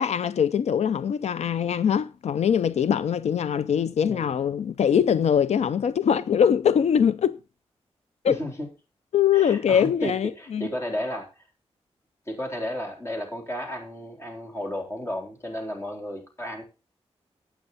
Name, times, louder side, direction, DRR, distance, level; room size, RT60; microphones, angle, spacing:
voice 1, 0.0-7.4 8.2-8.4 9.1-10.7, left 8 dB, 90° left, 0.5 m, -22 dB
voice 2, 8.3-8.7 9.3-11.3 12.3-16.6, equal, 25° left, 3.8 m, -33 dB
12.0 x 9.1 x 4.1 m
wide cardioid pair, 135°, 11 cm